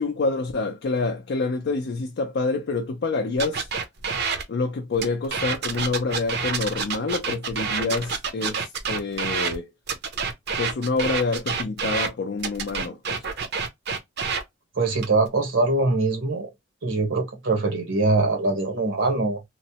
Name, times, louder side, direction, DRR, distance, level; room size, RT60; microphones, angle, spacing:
voice 1, 0.0-3.7 4.5-9.7 10.6-13.3, left 3 dB, 60° left, 0.4 m, -27 dB
sound 1, 3.4-4.4 5.0-9.6 9.9-12.1 12.4-14.4 14.9-15.3, right 5 dB, 60° right, 0.6 m, -28 dB
voice 2, 14.7-16.5 16.8-19.4, right 3 dB, 80° right, 1.0 m, -23 dB
3.1 x 2.0 x 2.8 m
head